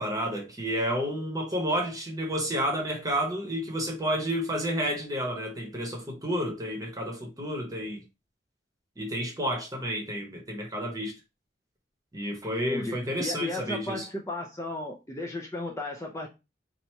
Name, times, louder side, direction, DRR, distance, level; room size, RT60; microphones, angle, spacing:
voice 1, 0.0-8.0 9.0-11.2 12.1-14.1, equal, 20° right, 1.1 m, -30 dB
voice 2, 12.6-16.3, left 2 dB, 15° left, 0.6 m, -35 dB
2.9 x 2.7 x 4.4 m
head